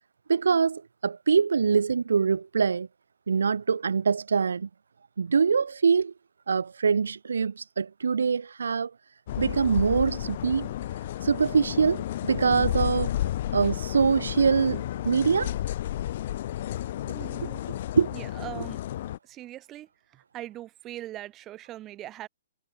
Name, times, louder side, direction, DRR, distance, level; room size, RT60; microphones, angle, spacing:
voice 1, 0.3-2.9 3.3-4.7 5.2-6.1 6.5-8.9 9.4-10.7 11.2-13.1 13.5-15.5 17.1-17.2 18.0-18.1, right 5 dB, 80° right, 1.5 m, -24 dB
sound 1, 9.3-19.2, left 13 dB, 50° left, 1.4 m, -32 dB
voice 2, 17.1-17.6 18.1-18.8 19.2-22.3, right 14 dB, 25° right, 4.4 m, -41 dB
hypercardioid pair, 140°, 0 cm